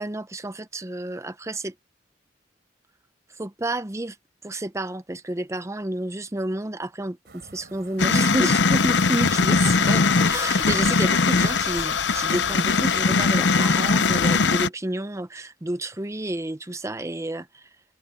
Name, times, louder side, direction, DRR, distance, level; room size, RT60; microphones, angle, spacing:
voice 1, 0.0-1.7 3.4-4.2 4.4-17.7, right 1 dB, 15° right, 0.7 m, -30 dB
sound 1, 7.3-12.9, right 2 dB, 65° right, 4.0 m, -49 dB
sound 2, 8.0-14.7, left 4 dB, 85° left, 0.8 m, -20 dB
head